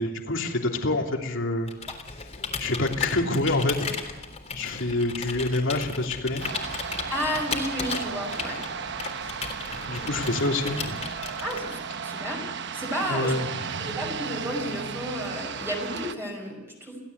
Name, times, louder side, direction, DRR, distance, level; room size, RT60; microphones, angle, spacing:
voice 1, 0.0-1.7 2.6-3.9 4.5-6.4 9.9-11.0 13.1-14.0, left 2 dB, 65° left, 2 dB, 3.1 m, -27 dB
Computer keyboard, 1.6-11.9, left 4 dB, 30° left, 3.6 m, -36 dB
sound 1, 6.4-16.1, right 6 dB, 60° right, 1.0 m, -35 dB
voice 2, 7.1-8.6 11.4-12.5 12.7-13.4 13.8-17.0, equal, 10° right, 0 dB, 5.6 m, -32 dB
28.5 x 16.5 x 8.3 m, 1.1 s
head